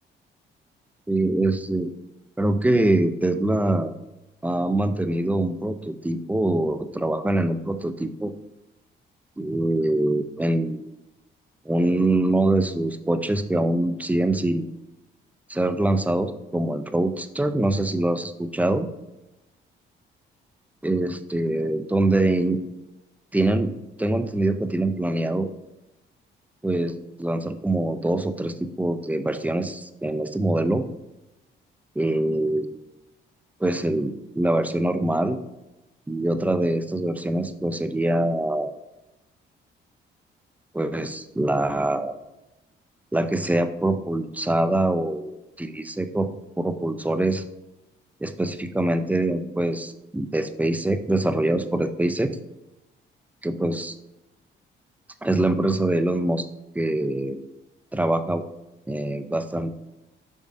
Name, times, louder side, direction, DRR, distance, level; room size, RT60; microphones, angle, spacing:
voice 1, 1.1-1.9 2.4-3.9 4.4-8.3 9.4-10.8 11.7-14.7 15.5-18.9 20.8-22.6 23.3-23.7 24.0-25.5 26.6-30.8 32.0-32.8 33.6-35.4 36.1-38.7 40.7-42.1 43.1-46.3 46.6-47.4 48.2-52.4 53.4-53.9 55.2-56.5 56.7-57.4 57.9-58.4 58.9-59.7, right 1 dB, 10° right, 10 dB, 0.5 m, -24 dB
7.1 x 5.2 x 2.6 m, 0.96 s
cardioid pair, 90°, 20 cm